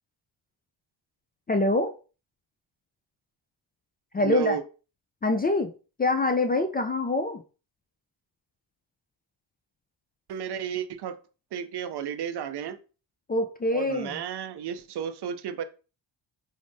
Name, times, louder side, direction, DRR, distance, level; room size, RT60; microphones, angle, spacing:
voice 1, 1.5-1.9 4.1-4.6 5.2-5.7 6.0-7.4 13.3-14.2, left 2 dB, 20° left, 6 dB, 0.3 m, -25 dB
voice 2, 4.2-4.6 10.3-11.1 11.5-12.8 13.7-15.6, right 9 dB, 55° right, 11 dB, 0.5 m, -33 dB
5.0 x 2.0 x 2.6 m, 0.34 s
cardioid pair, 60°, 48 cm